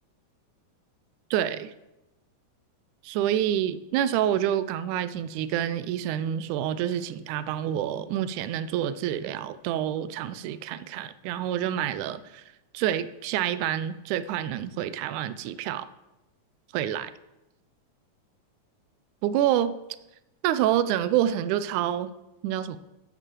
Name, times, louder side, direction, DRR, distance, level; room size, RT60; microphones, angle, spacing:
voice 1, 1.3-1.7 3.0-12.4 12.7-15.9 16.7-17.1 19.2-19.8 20.4-22.1 22.4-22.8, right 11 dB, 80° right, 2.0 m, -27 dB
9.0 x 6.6 x 7.4 m
omnidirectional pair, 3.7 m